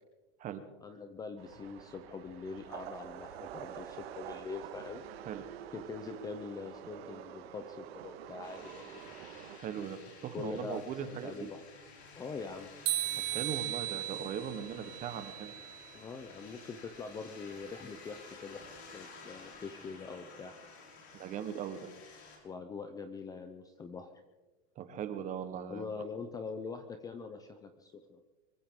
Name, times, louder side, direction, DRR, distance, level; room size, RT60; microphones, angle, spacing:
voice 1, 0.8-5.0 5.7-9.0 10.3-10.8 11.1-11.6 12.1-12.7 15.9-18.6 18.9-20.5 22.4-24.1 25.7-28.3, left 4 dB, 10° left, 8 dB, 0.6 m, -43 dB
sound 1, 1.4-9.6, right 10 dB, 65° right, 1.7 m, -47 dB
sound 2, 8.4-22.4, left 4 dB, 85° left, 5.6 m, -53 dB
voice 2, 9.5-10.0 10.2-11.5 13.1-15.5 21.1-21.9 24.8-25.9, right 8 dB, 25° right, 10 dB, 1.2 m, -39 dB
sound 3, 12.9-15.9, right 15 dB, 45° right, 1.8 m, -37 dB
24.0 x 15.0 x 3.8 m, 1.2 s
supercardioid pair, 160°, 32 cm